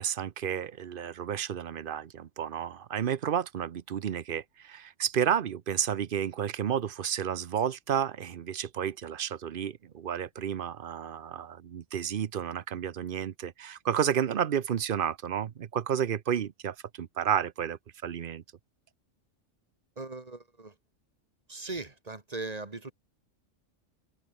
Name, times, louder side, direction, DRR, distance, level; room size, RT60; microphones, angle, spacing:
voice 1, 0.0-18.4, right 8 dB, 50° right, 0.8 m, -31 dB
voice 2, 20.0-20.8 21.5-22.9, right 3 dB, 30° right, 1.7 m, -39 dB
open air
omnidirectional pair, 1.3 m